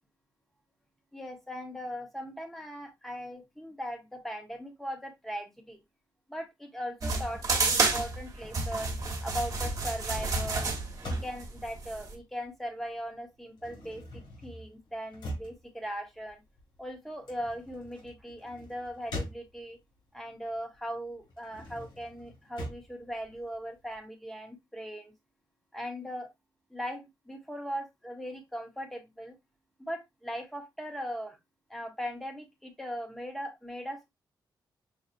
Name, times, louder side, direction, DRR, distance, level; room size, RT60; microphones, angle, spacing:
voice 1, 1.1-5.8 6.3-9.0 9.2-10.7 11.0-14.0 14.4-16.4 16.8-19.8 20.1-25.1 25.7-26.3 26.7-29.4 29.8-31.4 31.7-34.1, equal, 5° left, 1.1 m, -39 dB
sound 1, 7.0-12.1, right 3 dB, 45° right, 1.2 m, -30 dB
sound 2, 10.1-12.9 13.1-20.0 20.4-24.0, equal, 75° left, 1.9 m, -43 dB
5.8 x 2.4 x 2.6 m
wide cardioid pair, 120°, 8 cm